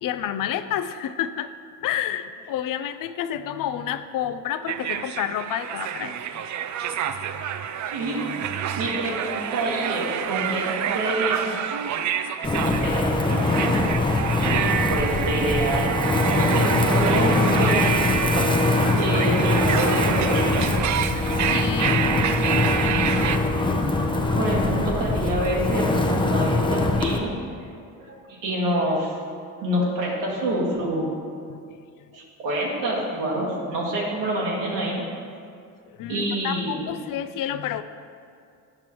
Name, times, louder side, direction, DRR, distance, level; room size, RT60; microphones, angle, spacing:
voice 1, 0.0-1.5 1.8-6.4 7.3-7.4 21.3-22.0 31.5-31.6 35.9-37.8, left 10 dB, 50° left, 12 dB, 0.5 m, -29 dB
sound 1, 4.7-23.4, right 9 dB, 45° right, 0.4 m, -27 dB
voice 2, 7.9-11.6 12.6-13.5 14.9-15.9 16.3-16.7 16.9-17.9 18.2-18.5 19.0-20.8 23.4-23.8 24.3-27.4 28.0-29.2 29.6-31.1 32.1-35.0 36.1-36.9, right 1 dB, 75° right, -4 dB, 1.8 m, -27 dB
Wind, 12.4-27.2, left 2 dB, 10° left, 0.7 m, -22 dB
8.6 x 6.0 x 3.0 m, 2.4 s
hypercardioid pair, 60°, 45 cm